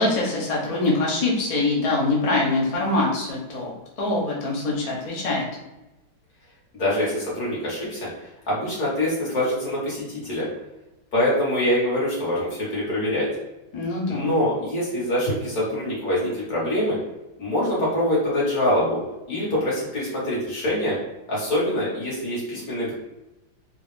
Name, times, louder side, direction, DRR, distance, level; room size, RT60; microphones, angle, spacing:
voice 1, 0.0-5.5 13.7-14.4, left 2 dB, 75° left, -4 dB, 0.3 m, -24 dB
voice 2, 6.7-10.5 11.1-13.3 14.1-17.0 17.4-19.0 19.3-21.0 21.3-23.0, left 1 dB, 50° left, -7 dB, 1.8 m, -24 dB
3.6 x 2.4 x 3.2 m, 1.0 s
omnidirectional pair, 2.1 m